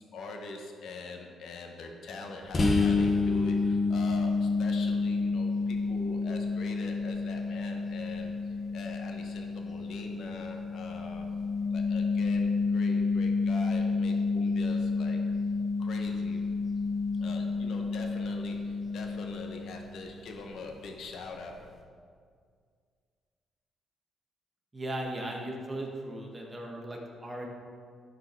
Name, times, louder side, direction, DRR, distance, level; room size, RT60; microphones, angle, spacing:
voice 1, 0.0-11.3 11.7-15.2 15.8-16.4 17.2-21.7, left 3 dB, 70° left, 3 dB, 1.2 m, -43 dB
sound 1, 2.5-20.0, left 4 dB, 35° left, 1.3 m, -29 dB
voice 2, 24.7-27.5, right 1 dB, 20° right, -1 dB, 1.7 m, -37 dB
12.0 x 4.8 x 4.7 m, 2.1 s
cardioid pair, 90°, 0 cm